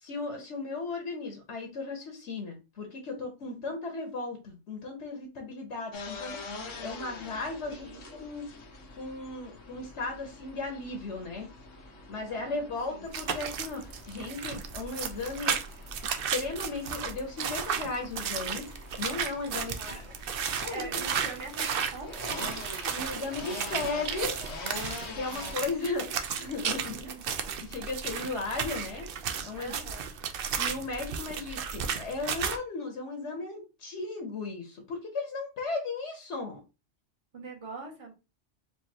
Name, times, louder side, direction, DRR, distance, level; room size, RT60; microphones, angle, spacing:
voice 1, 0.0-7.8 8.1-8.5 9.0-11.5 12.1-15.6 16.0-18.7 19.0-20.0 20.6-21.0 22.9-24.3 25.1-27.1 27.6-29.1 29.4-29.7 30.6-36.6, left 3 dB, 65° left, 3 dB, 1.2 m, -36 dB
voice 2, 3.4-3.8 7.7-8.2 12.3-13.1 19.6-20.0 20.7-22.6 25.4-25.9 27.0-27.3 29.6-30.1 37.3-38.1, right 3 dB, 25° right, 0 dB, 1.2 m, -44 dB
sound 1, 5.9-25.5, left 3 dB, 90° left, 1.2 m, -45 dB
sound 2, 13.1-32.6, right 7 dB, 60° right, 0.7 m, -34 dB
4.6 x 2.7 x 2.7 m, 0.29 s
omnidirectional pair, 1.3 m